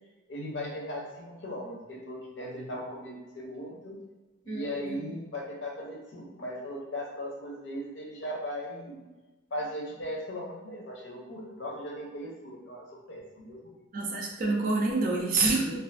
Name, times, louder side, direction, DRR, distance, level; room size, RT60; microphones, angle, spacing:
voice 1, 0.3-4.0 4.4-9.0 9.5-13.8, equal, 65° left, -2 dB, 0.6 m, -38 dB
voice 2, 4.5-5.0 13.9-15.8, right 3 dB, 45° right, -1 dB, 0.4 m, -28 dB
2.5 x 2.4 x 2.4 m, 1.2 s
head